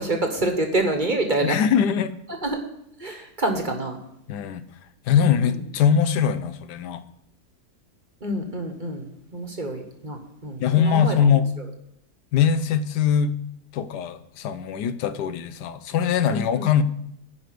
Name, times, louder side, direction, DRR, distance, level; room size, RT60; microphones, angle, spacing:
voice 1, 0.0-1.5 2.4-2.6 3.0-4.0 5.5-5.6 8.2-9.0 9.3-11.2 16.3-16.4, right 2 dB, 30° right, 4 dB, 1.2 m, -26 dB
voice 2, 1.4-2.1 4.3-4.6 5.1-7.0 10.6-11.5 12.3-13.4 13.7-16.8, left 7 dB, 85° left, 12 dB, 1.3 m, -21 dB
10.0 x 5.0 x 7.7 m, 0.75 s
omnidirectional pair, 1.7 m